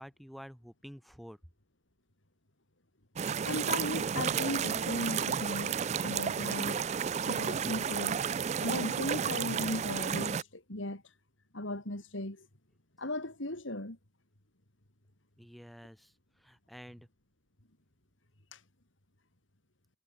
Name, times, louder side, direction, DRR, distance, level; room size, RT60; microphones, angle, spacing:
voice 1, 0.0-1.4 15.4-16.1 16.4-17.1, equal, ahead, 6.3 m, -49 dB
sound 1, 3.2-10.4, right 7 dB, 35° right, 0.3 m, -32 dB
voice 2, 3.5-5.8 6.0-6.8 7.3-8.2 8.6-11.0 11.5-12.5 13.0-14.0 18.5-18.6, left 1 dB, 80° left, 4.1 m, -37 dB
head